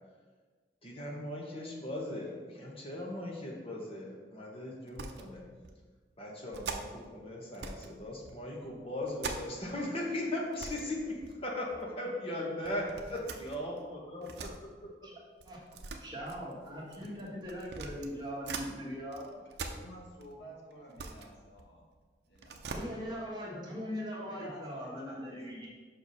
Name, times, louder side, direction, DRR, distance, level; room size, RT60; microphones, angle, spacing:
voice 1, 0.8-5.4 6.2-14.5, left 1 dB, 35° left, -2 dB, 1.4 m, -38 dB
sound 1, 4.9-5.3 5.6-5.8 6.5-7.1 7.5-7.9 8.2-9.8 10.1-10.2 10.5-10.9 11.2-11.8 12.6-14.6 15.4-18.7 19.1-20.3 20.7-22.0 22.3-22.8, right 4 dB, 65° right, 0.6 m, -43 dB
voice 2, 16.0-19.2 22.6-25.7, equal, 25° right, -5 dB, 1.5 m, -40 dB
voice 3, 19.6-21.8 22.3-22.6 24.2-25.4, right 1 dB, 70° left, -1 dB, 1.4 m, -51 dB
5.7 x 4.8 x 5.5 m, 1.4 s
head